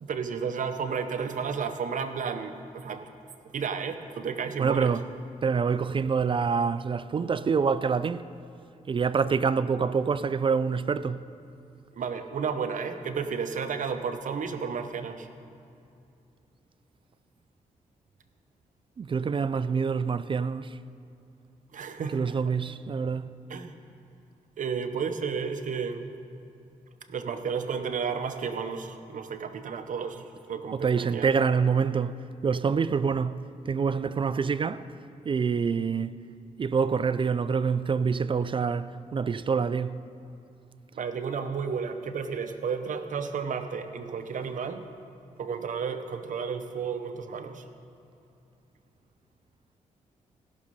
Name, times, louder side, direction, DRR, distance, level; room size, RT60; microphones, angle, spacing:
voice 1, 0.0-3.0 3.5-4.9 11.9-15.3 21.7-22.2 23.5-23.7 24.6-26.1 27.1-31.3 40.9-44.8 45.4-47.6, right 6 dB, 65° right, 0.8 m, -32 dB
voice 2, 4.6-5.0 5.4-8.3 8.9-11.2 19.0-20.7 22.1-23.3 30.7-34.9 35.3-36.2 36.6-40.0, right 5 dB, 35° right, 0.3 m, -26 dB
16.0 x 6.4 x 5.4 m
cardioid pair, 75°, 14 cm